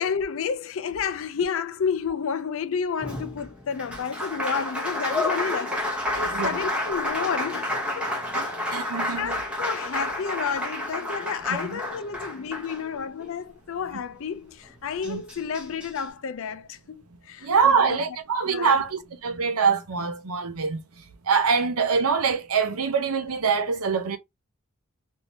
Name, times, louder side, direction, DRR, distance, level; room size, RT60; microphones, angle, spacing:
voice 1, 0.0-8.2 9.2-18.0 18.5-18.7, left 6 dB, 65° left, 0.4 m, -31 dB
Applause, 3.0-13.3 14.6-14.7 15.0-16.0, left 1 dB, 5° right, 0.8 m, -30 dB
voice 2, 8.3-9.4 11.5-11.8 15.0-15.2 17.4-24.2, right 5 dB, 80° right, 0.7 m, -24 dB
3.2 x 2.7 x 2.7 m
head